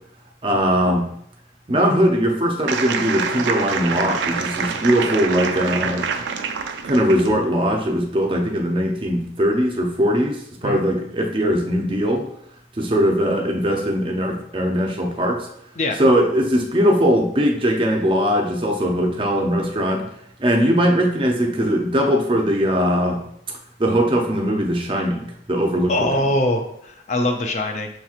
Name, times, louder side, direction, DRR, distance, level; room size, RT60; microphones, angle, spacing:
voice 1, 0.4-1.1 1.7-6.1 6.8-12.3 12.8-15.5 16.0-20.1 20.4-23.2 23.8-26.1, equal, 30° right, 2 dB, 0.5 m, -20 dB
sound 1, 2.7-7.4, right 6 dB, 85° right, 0.4 m, -26 dB
voice 2, 25.9-27.9, left 1 dB, 40° left, 4 dB, 0.4 m, -22 dB
6.4 x 2.9 x 2.4 m, 0.72 s
head